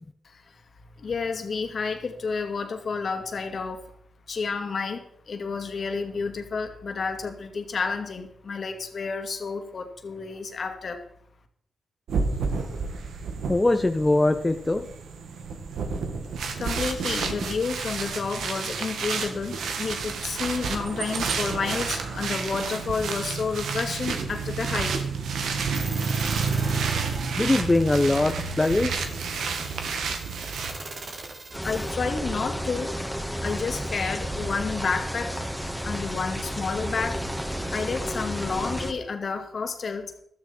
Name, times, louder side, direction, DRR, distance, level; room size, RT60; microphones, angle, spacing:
voice 1, 0.2-0.6 1.0-3.9 4.3-11.0 16.6-25.0 30.7-30.8 31.6-32.9 33.4-35.4 35.8-37.2 37.7-40.1, left 4 dB, 60° left, 6 dB, 2.3 m, -30 dB
sound 1, 12.1-30.7, right 5 dB, 80° right, 1.9 m, -30 dB
voice 2, 13.5-14.8 27.4-29.1, left 2 dB, 25° left, 6 dB, 1.1 m, -22 dB
sound 2, 25.7-31.9, right 3 dB, 55° right, 3.3 m, -40 dB
sound 3, 31.5-38.9, equal, ahead, 2.3 m, -32 dB
15.0 x 13.0 x 4.5 m, 0.68 s
supercardioid pair, 50°, 0 cm